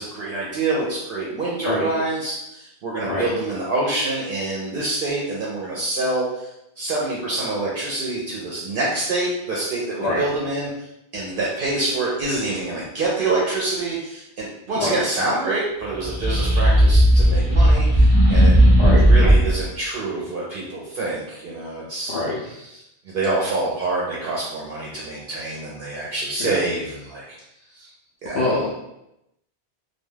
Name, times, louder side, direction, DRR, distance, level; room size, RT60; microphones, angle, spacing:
voice 1, 0.0-10.9 11.1-18.5 19.1-22.2 22.5-22.8 23.0-27.4 27.7-27.9 28.2-28.4, right 2 dB, 65° right, -5 dB, 0.7 m, -26 dB
sound 1, 15.9-19.6, equal, 15° right, 0.5 m, -15 dB
voice 2, 28.3-28.7, left 2 dB, 60° left, -6 dB, 0.6 m, -24 dB
2.2 x 2.2 x 3.2 m, 0.85 s
omnidirectional pair, 1.1 m